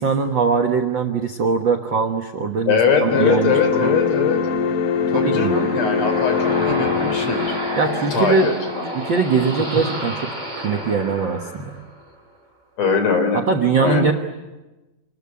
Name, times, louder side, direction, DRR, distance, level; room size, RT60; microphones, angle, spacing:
voice 1, 0.0-3.9 5.1-5.5 7.8-8.5 8.9-10.3 10.6-11.7 13.3-14.1, right 5 dB, 65° right, 4 dB, 1.2 m, -21 dB
voice 2, 2.7-4.4 5.1-7.5 8.1-8.9 12.8-13.4 13.8-14.1, left 5 dB, 50° left, 6 dB, 4.3 m, -21 dB
sound 1, 3.1-10.1, left 6 dB, 65° left, 2.7 m, -24 dB
sound 2, 4.6-12.1, right 1 dB, 10° right, 5.2 m, -31 dB
27.5 x 21.0 x 9.7 m, 1.1 s
omnidirectional pair, 4.2 m